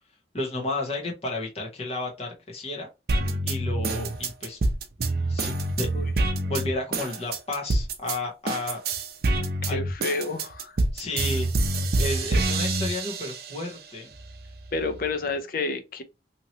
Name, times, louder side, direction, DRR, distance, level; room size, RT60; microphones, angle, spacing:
voice 1, 0.3-2.9 3.4-4.6 5.3-5.9 6.5-8.8 9.7-9.8 10.9-11.5 12.0-14.1, left 2 dB, 35° left, 1.0 m, -32 dB
sound 1, 3.1-8.2 8.5-13.7 14.1-15.1, right 2 dB, 60° right, 0.5 m, -26 dB
voice 2, 9.6-10.8 14.7-16.0, left 3 dB, 50° left, 0.5 m, -30 dB
2.9 x 2.8 x 2.8 m
head